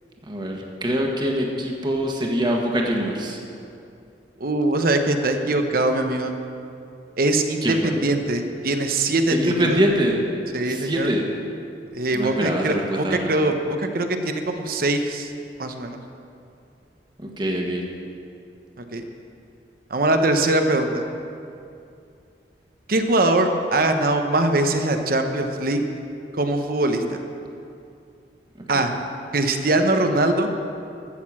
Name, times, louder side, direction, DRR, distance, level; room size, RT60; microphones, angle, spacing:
voice 1, 0.3-3.4 7.6-7.9 9.3-10.2 10.7-11.3 12.1-13.3 17.2-17.8 28.7-28.8, equal, 25° right, 0 dB, 1.5 m, -24 dB
voice 2, 4.4-6.3 7.2-9.8 10.5-11.1 11.9-15.3 15.6-16.0 18.9-19.0 19.9-21.0 22.9-25.8 26.3-27.0 28.7-28.9 29.3-30.5, right 2 dB, 55° right, 6 dB, 0.9 m, -22 dB
14.5 x 6.7 x 7.5 m, 2.6 s
head